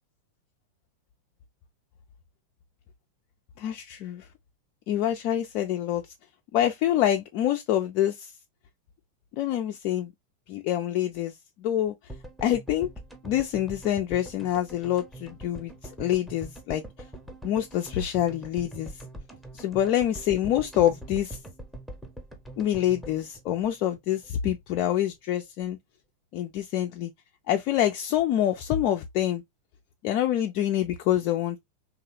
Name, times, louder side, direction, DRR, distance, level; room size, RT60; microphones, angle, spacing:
voice 1, 3.6-4.3 4.9-6.0 6.5-8.3 9.4-10.1 10.5-11.9 12.4-12.9 13.2-16.8 17.4-18.9 19.5-21.4 22.6-25.8 26.3-27.1 27.5-29.4 30.0-31.6, left 12 dB, 45° left, 0.3 m, -26 dB
sound 1, 12.1-24.3 24.6-24.7 24.8-24.9, right 1 dB, ahead, 0.7 m, -44 dB
3.1 x 2.3 x 2.7 m
figure-of-eight pair, 90°, 0 cm